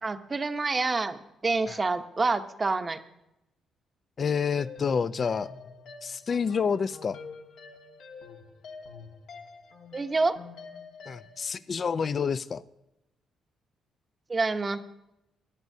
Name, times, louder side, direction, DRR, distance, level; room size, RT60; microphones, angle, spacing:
voice 1, 0.0-3.0 9.9-10.4 14.3-14.8, right 3 dB, 30° right, 9 dB, 0.9 m, -27 dB
voice 2, 4.2-5.5 6.0-7.2 11.1-12.6, left 6 dB, 45° left, 15 dB, 0.5 m, -28 dB
sound 1, 4.6-11.4, left 4 dB, 75° left, 1.5 m, -46 dB
21.0 x 10.5 x 2.7 m, 0.87 s
cardioid pair, 90°, 0 cm